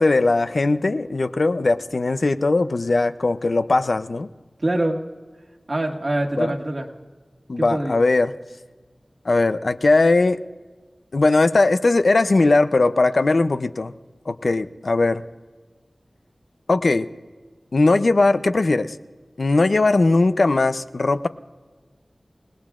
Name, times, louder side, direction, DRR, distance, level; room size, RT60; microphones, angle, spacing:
voice 1, 0.0-4.3 6.4-6.5 7.5-8.3 9.3-10.4 11.1-13.9 14.3-15.2 16.7-17.1 17.7-19.0 19.4-21.3, left 3 dB, 70° left, 10 dB, 0.6 m, -19 dB
voice 2, 4.6-5.0 5.7-6.9 7.6-8.0, right 1 dB, 50° right, 2 dB, 1.8 m, -24 dB
29.0 x 18.0 x 2.5 m, 1.4 s
wide cardioid pair, 50°, 0 cm